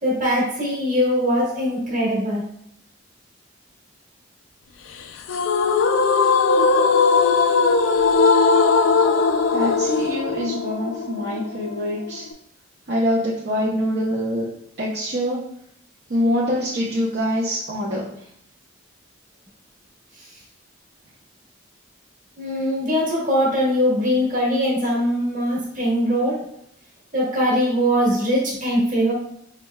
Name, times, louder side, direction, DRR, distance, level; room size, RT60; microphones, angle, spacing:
voice 1, 0.0-2.4 22.4-26.5 27.1-29.1, equal, 40° right, -4 dB, 1.4 m, -21 dB
sound 1, 5.3-12.3, left 4 dB, 80° left, 0.4 m, -19 dB
voice 2, 9.5-12.2 12.9-14.5 14.8-15.5 16.1-18.3, equal, 55° right, -5 dB, 0.6 m, -24 dB
4.9 x 3.1 x 2.2 m, 0.72 s
head